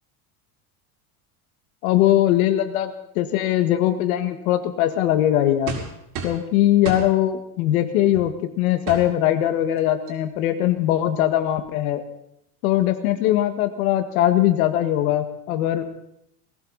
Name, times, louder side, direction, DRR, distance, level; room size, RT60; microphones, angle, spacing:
voice 1, 1.8-5.7 6.2-12.0 12.6-15.8, left 12 dB, 85° left, 8 dB, 1.9 m, -21 dB
sound 1, 5.7-6.5 6.8-7.1 8.1-8.3 8.9-9.1 9.8-9.9 10.1-10.3, right 4 dB, 80° right, 4.9 m, -31 dB
20.0 x 17.0 x 4.2 m, 0.80 s
cardioid pair, 175°, 42 cm